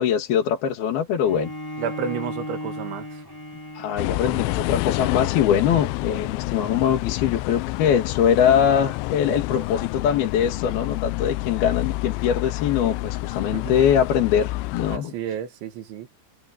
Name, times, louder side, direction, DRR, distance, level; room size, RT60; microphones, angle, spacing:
voice 1, 0.0-1.5 3.8-15.1, left 8 dB, 60° left, 3.7 m, -22 dB
Bowed string instrument, 1.2-6.4, left 1 dB, 5° left, 3.7 m, -37 dB
voice 2, 1.8-3.1 13.5-13.7 14.9-16.1, right 8 dB, 80° right, 4.3 m, -31 dB
sound 1, 4.0-15.0, left 20 dB, 85° left, 3.0 m, -29 dB
omnidirectional pair, 5.3 m